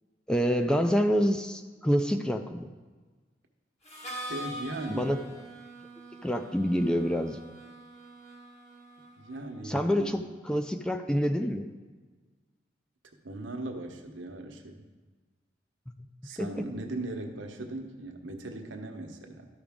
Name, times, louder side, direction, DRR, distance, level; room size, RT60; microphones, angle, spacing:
voice 1, 0.3-2.7 4.9-5.2 6.2-7.4 9.6-11.7 16.4-16.6, equal, 5° left, 6 dB, 0.3 m, -27 dB
Harmonica, 3.8-9.6, equal, 35° left, 1.3 m, -44 dB
voice 2, 4.3-5.1 9.2-10.1 13.2-14.8 16.2-19.5, right 2 dB, 80° right, 4 dB, 0.9 m, -38 dB
12.5 x 4.9 x 3.6 m, 1.3 s
head